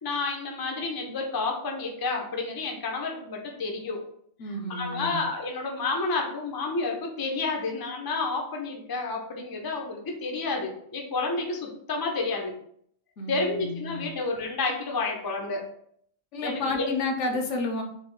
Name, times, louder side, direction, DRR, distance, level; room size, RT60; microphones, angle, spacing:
voice 1, 0.0-4.0 4.8-12.5 13.3-15.7 16.4-16.8, left 3 dB, 30° left, 1 dB, 0.4 m, -30 dB
voice 2, 4.4-5.2 13.2-14.1 16.3-17.8, left 2 dB, 75° left, 3 dB, 1.0 m, -31 dB
4.6 x 2.0 x 3.7 m, 0.65 s
omnidirectional pair, 1.3 m